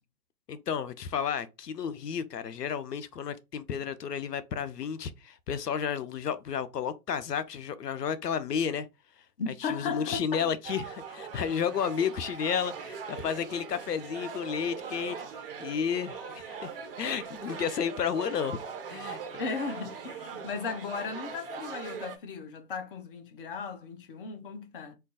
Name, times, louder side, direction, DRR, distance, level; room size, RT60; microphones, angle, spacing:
voice 1, 0.5-8.9 9.6-16.7 17.0-18.6 18.9-19.2, left 7 dB, 85° left, 0.6 m, -32 dB
voice 2, 9.4-10.5 19.4-25.0, left 5 dB, 35° left, 0.5 m, -36 dB
sound 1, 10.6-22.2, right 6 dB, 40° right, 0.5 m, -41 dB
2.3 x 2.2 x 3.8 m
figure-of-eight pair, 120°, 47 cm